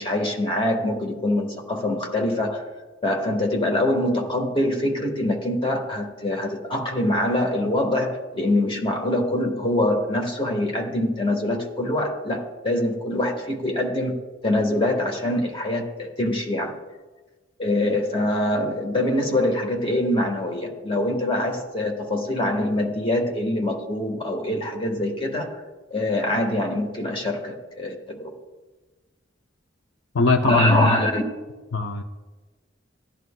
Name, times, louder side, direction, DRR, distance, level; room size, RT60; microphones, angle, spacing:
voice 1, 0.0-2.6 3.0-14.2 14.4-16.8 17.6-25.6 25.9-28.3 30.4-31.2, left 1 dB, 30° left, 2 dB, 1.4 m, -24 dB
voice 2, 30.1-31.0 31.7-32.0, left 3 dB, 80° left, 7 dB, 0.6 m, -20 dB
16.0 x 11.0 x 2.2 m, 1.3 s
head